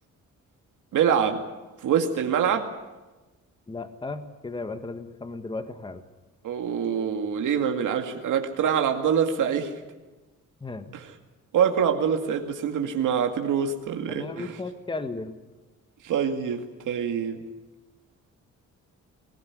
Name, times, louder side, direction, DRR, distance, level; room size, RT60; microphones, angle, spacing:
voice 1, 0.9-1.4 1.8-2.7 6.4-9.7 10.9-11.1 11.5-14.5 16.0-17.4, right 7 dB, 90° right, 4 dB, 2.2 m, -25 dB
voice 2, 3.7-6.0 10.6-10.9 14.1-15.4, left 3 dB, 15° left, 9 dB, 1.5 m, -35 dB
23.5 x 16.5 x 9.6 m, 1.2 s
cardioid pair, 135°, 30 cm